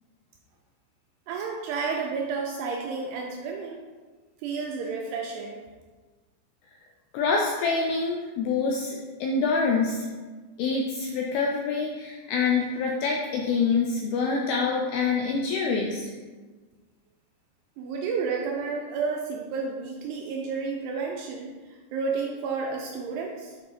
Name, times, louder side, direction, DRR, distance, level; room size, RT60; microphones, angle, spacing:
voice 1, 1.3-3.8 4.4-5.6 17.8-23.5, right 5 dB, 85° right, 0 dB, 2.4 m, -31 dB
voice 2, 7.1-10.1 10.6-16.1, left 4 dB, 90° left, -1 dB, 2.3 m, -26 dB
7.6 x 4.9 x 3.4 m, 1.3 s
omnidirectional pair, 5.2 m